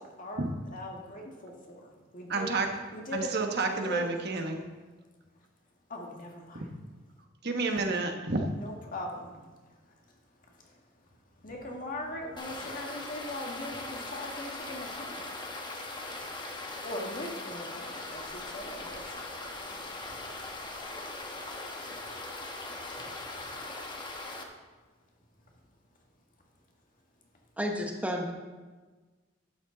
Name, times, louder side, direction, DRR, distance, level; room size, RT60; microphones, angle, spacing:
voice 1, 0.2-2.6 2.9-3.3 3.7-4.0 5.9-6.6 8.5-9.6 10.5-10.8 11.4-20.3 20.6-20.8 22.0-22.1 23.0-23.1 23.4-23.5, left 1 dB, 45° left, 0 dB, 1.8 m, -41 dB
voice 2, 2.3-2.7 3.1-4.6 6.5-6.7 7.4-8.5, right 3 dB, 55° right, 3 dB, 1.2 m, -30 dB
sound 1, 12.4-24.4, left 2 dB, 25° left, 1.1 m, -40 dB
voice 3, 27.6-28.3, equal, 5° right, 1 dB, 1.1 m, -31 dB
12.0 x 9.3 x 4.0 m, 1.3 s
head